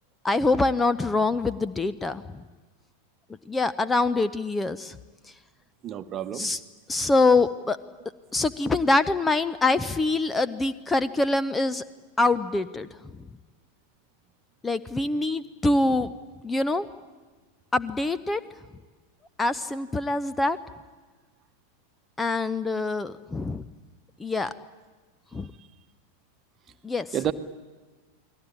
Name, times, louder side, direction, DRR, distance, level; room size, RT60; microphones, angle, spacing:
voice 1, 0.2-2.4 3.5-5.0 6.3-6.6 6.9-7.8 8.3-11.8 12.2-12.9 14.6-16.1 16.4-16.9 17.7-18.4 19.4-20.6 22.2-23.6 24.2-24.5 25.3-25.5 26.8-27.2, left 2 dB, 10° left, 15 dB, 0.8 m, -24 dB
voice 2, 5.8-6.5 27.1-27.3, right 10 dB, 30° right, 12 dB, 1.3 m, -29 dB
29.5 x 21.0 x 8.7 m, 1.3 s
figure-of-eight pair, 90°, 0 cm